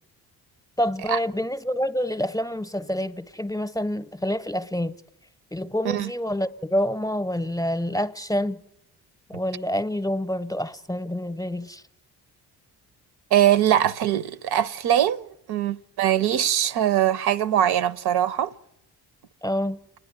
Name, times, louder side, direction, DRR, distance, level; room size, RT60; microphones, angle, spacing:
voice 1, 0.8-5.0 5.5-8.6 9.3-11.8 19.4-19.8, equal, 10° left, 0.7 m, -27 dB
voice 2, 13.3-18.5, right 11 dB, 75° right, 0.7 m, -22 dB
29.0 x 10.0 x 9.6 m
cardioid pair, 90°, 39 cm